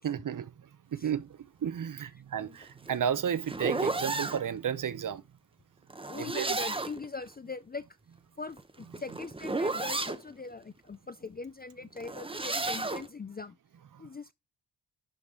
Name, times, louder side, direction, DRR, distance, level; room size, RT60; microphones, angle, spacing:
voice 1, 0.0-5.2 6.2-6.6 13.9-14.1, right 8 dB, 45° right, 0.7 m, -33 dB
sound 1, 2.6-4.4 5.9-7.1 8.5-10.2 12.0-13.1, right 3 dB, 10° right, 0.7 m, -33 dB
voice 2, 6.1-7.8 8.4-13.6 14.0-14.3, left 4 dB, 25° left, 0.4 m, -41 dB
11.5 x 4.8 x 3.7 m
wide cardioid pair, 155°, 44 cm